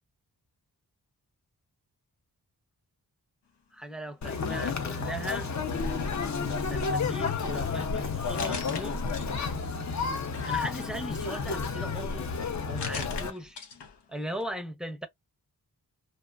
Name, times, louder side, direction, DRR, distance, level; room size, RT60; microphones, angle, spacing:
voice 1, 3.7-5.5 6.7-8.9 10.4-12.3 12.7-13.6 14.1-15.1, right 1 dB, ahead, 0.6 m, -38 dB
Conversation, 4.2-13.3, left 5 dB, 45° left, 0.5 m, -31 dB
sound 1, 4.3-5.3 5.7-9.8 10.3-14.1 14.4-14.5, left 5 dB, 90° left, 0.7 m, -44 dB
2.6 x 2.1 x 2.3 m
cardioid pair, 55°, 40 cm